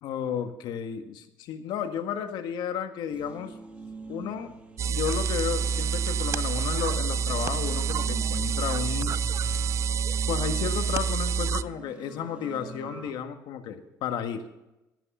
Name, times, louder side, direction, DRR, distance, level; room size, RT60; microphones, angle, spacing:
voice 1, 0.0-3.5 4.1-4.5 4.9-9.2 10.3-14.4, left 8 dB, 75° left, 7 dB, 1.6 m, -32 dB
sound 1, 3.1-13.1, right 3 dB, 15° right, 2.3 m, -44 dB
sound 2, 4.8-11.6, right 6 dB, 40° right, 0.4 m, -27 dB
13.0 x 11.0 x 5.5 m, 0.94 s
cardioid pair, 125°, 8 cm